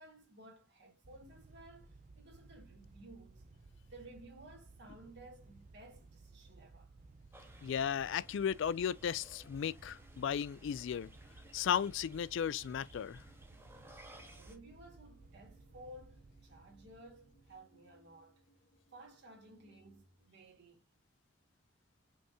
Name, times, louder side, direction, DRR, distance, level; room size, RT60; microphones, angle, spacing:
voice 1, 0.0-3.4 3.9-6.9 14.1-18.4 18.9-20.8, right 1 dB, 60° right, 2.2 m, -56 dB
sound 1, 1.0-17.6, right 3 dB, 40° right, 0.6 m, -59 dB
sound 2, 7.3-14.6, right 1 dB, 10° right, 1.0 m, -59 dB
voice 2, 7.6-11.1 11.5-13.2, left 8 dB, 65° left, 0.3 m, -35 dB
Organ, 9.4-20.4, right 1 dB, 35° left, 0.7 m, -69 dB
5.4 x 3.5 x 2.8 m
head